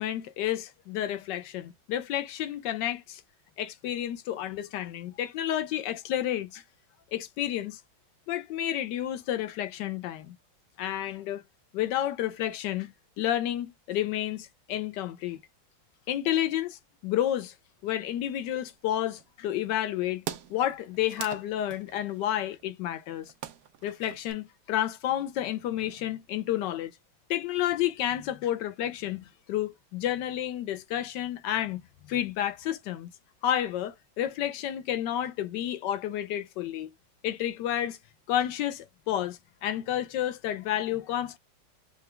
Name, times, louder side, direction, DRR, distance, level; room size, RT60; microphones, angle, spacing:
voice 1, 0.0-3.2 3.6-6.6 7.1-7.8 8.3-10.4 10.8-11.4 11.7-15.4 16.1-17.5 17.8-20.2 20.5-23.3 23.8-26.9 27.3-33.1 33.4-36.9 37.2-38.0 38.3-41.4, left 12 dB, 75° left, 1.1 m, -30 dB
sound 1, 18.5-19.3 19.8-19.9 20.1-24.3, right 11 dB, 75° right, 0.8 m, -42 dB
4.8 x 2.2 x 3.2 m
omnidirectional pair, 2.2 m